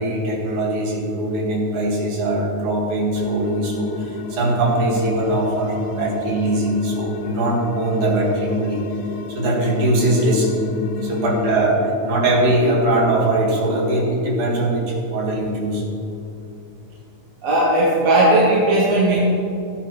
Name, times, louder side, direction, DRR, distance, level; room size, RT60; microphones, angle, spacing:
voice 1, 0.0-8.8 9.3-10.5 11.0-15.8, right 1 dB, 80° right, -3 dB, 3.4 m, -21 dB
sound 1, 3.2-11.6, left 6 dB, 80° left, 1.8 m, -32 dB
voice 2, 17.4-19.2, right 1 dB, 65° right, -6 dB, 2.4 m, -16 dB
16.0 x 8.8 x 3.2 m, 2.7 s
omnidirectional pair, 3.4 m